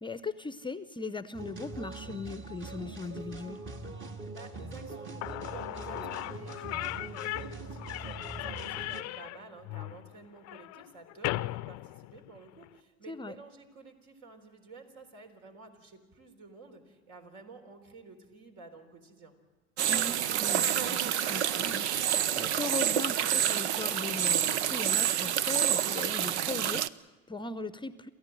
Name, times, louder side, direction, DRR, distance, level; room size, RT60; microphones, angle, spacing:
voice 1, 0.0-3.6 13.1-13.4 19.9-28.1, left 3 dB, 15° left, 13 dB, 0.7 m, -39 dB
sound 1, 1.3-9.0, right 3 dB, 35° right, 2.2 m, -42 dB
voice 2, 4.3-19.4, right 3 dB, 60° right, 4 dB, 3.9 m, -51 dB
Slam / Squeak, 4.9-5.0 5.2-12.7, left 19 dB, 55° left, 0.6 m, -38 dB
sound 2, 19.8-26.9, right 10 dB, 90° right, 0.6 m, -28 dB
28.5 x 14.0 x 7.7 m, 1.2 s
hypercardioid pair, 80°, 33 cm